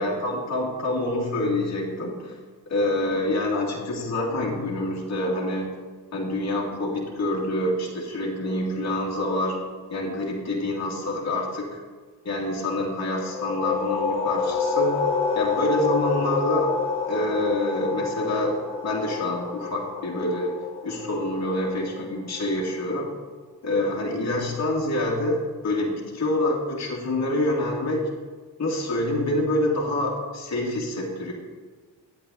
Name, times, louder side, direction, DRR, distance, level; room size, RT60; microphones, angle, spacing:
voice 1, 0.0-2.3 2.7-5.7 6.1-9.6 9.9-11.8 12.2-15.0 15.3-16.7 17.1-18.6 18.8-20.5 20.8-23.1 23.6-28.1 28.6-31.3, left 1 dB, 40° left, -4 dB, 2.6 m, -26 dB
sound 1, 13.2-22.6, left 5 dB, 85° left, 1.4 m, -28 dB
10.0 x 8.5 x 4.1 m, 1.5 s
cardioid pair, 75°, 42 cm